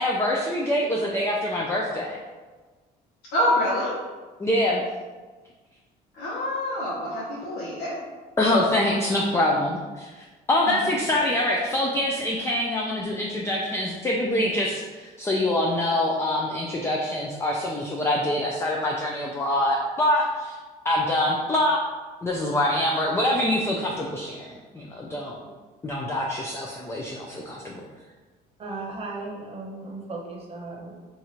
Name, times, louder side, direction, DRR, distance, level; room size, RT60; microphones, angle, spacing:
voice 1, 0.0-2.2 4.4-4.8 8.4-20.6 20.8-21.8 22.2-25.4 25.8-27.8, left 1 dB, 15° left, -2 dB, 0.4 m, -25 dB
voice 2, 3.3-4.0 6.2-8.0, left 1 dB, 80° left, -7 dB, 0.9 m, -26 dB
voice 3, 28.6-31.1, right 3 dB, 35° right, -1 dB, 0.9 m, -36 dB
2.9 x 2.4 x 4.2 m, 1.3 s
cardioid pair, 110°, 17 cm